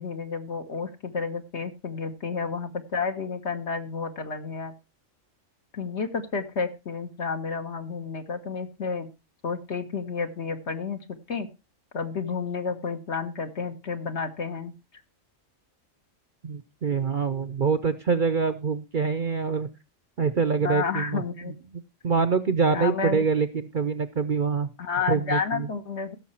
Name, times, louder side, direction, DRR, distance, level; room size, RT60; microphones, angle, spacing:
voice 1, 0.0-4.7 5.7-9.1 9.4-11.5 11.9-14.7 20.6-21.5 22.7-23.2 24.8-26.2, left 5 dB, 60° left, 7 dB, 1.6 m, -31 dB
voice 2, 16.4-19.7 20.2-21.2 22.0-24.7 25.1-25.7, right 5 dB, 50° right, 13 dB, 0.7 m, -25 dB
16.0 x 6.6 x 4.3 m, 0.28 s
omnidirectional pair, 1.4 m